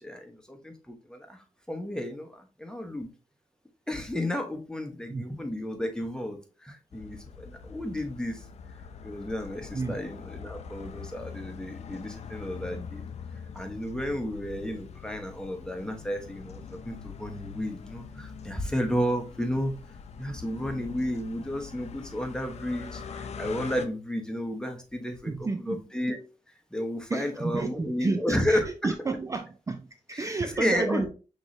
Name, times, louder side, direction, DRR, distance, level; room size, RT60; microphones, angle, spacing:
voice 1, 0.0-1.4 1.7-3.1 3.9-8.4 9.0-13.0 13.5-19.7 20.2-25.3 25.7-26.2 26.7-28.9 30.6-31.1, equal, 5° left, 1.0 m, -32 dB
sound 1, 6.9-23.9, left 6 dB, 60° left, 0.5 m, -43 dB
voice 2, 25.3-25.9 27.1-31.1, right 3 dB, 25° right, 0.4 m, -31 dB
6.0 x 3.1 x 2.6 m
cardioid pair, 75°, 12 cm